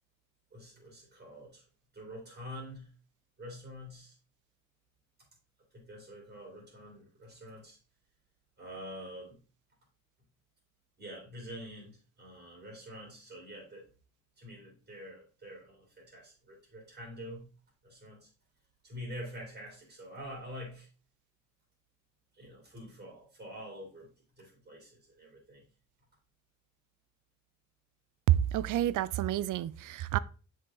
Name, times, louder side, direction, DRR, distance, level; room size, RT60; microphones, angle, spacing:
voice 1, 0.5-1.6 1.9-2.9 3.4-4.2 5.7-7.8 8.6-9.4 11.0-13.9 14.4-17.5 17.8-18.3 18.8-20.9 22.3-24.1 24.4-25.6, equal, 35° right, 3.0 m, -46 dB
voice 2, 28.3-30.2, right 12 dB, 80° right, 0.5 m, -28 dB
7.2 x 4.7 x 3.6 m
cardioid pair, 110°, 31 cm